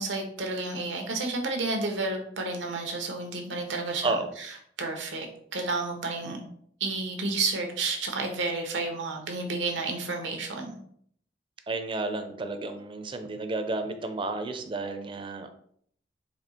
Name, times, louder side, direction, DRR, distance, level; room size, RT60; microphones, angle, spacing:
voice 1, 0.0-4.5 4.8-6.4 6.8-10.8, right 3 dB, 90° right, 3 dB, 1.0 m, -31 dB
voice 2, 11.7-15.5, right 2 dB, 30° right, 8 dB, 0.5 m, -31 dB
4.3 x 2.7 x 4.2 m, 0.64 s
head